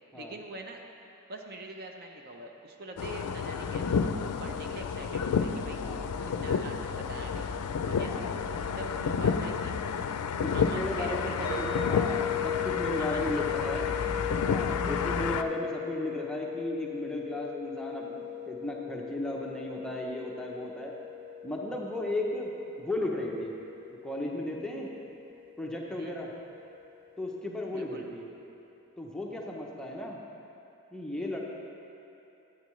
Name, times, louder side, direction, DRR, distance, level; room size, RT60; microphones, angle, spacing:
voice 1, 0.1-0.8 1.3-4.1 4.4-5.8 6.2-7.5 7.8-9.7 10.5-12.1 13.0-14.4 14.8-15.5 25.9-26.2 27.7-28.1, right 2 dB, 45° right, 3 dB, 0.6 m, -44 dB
sound 1, 3.0-15.4, left 6 dB, 80° left, 0.4 m, -30 dB
voice 2, 10.4-13.9 14.5-20.9 21.4-22.5 22.8-23.5 24.0-24.9 25.6-26.3 27.2-28.2 29.0-30.2 30.9-31.4, left 1 dB, 5° left, -2 dB, 0.7 m, -35 dB
sound 2, 11.4-26.4, left 9 dB, 25° left, 1.4 m, -38 dB
12.0 x 8.6 x 3.1 m, 2.8 s
head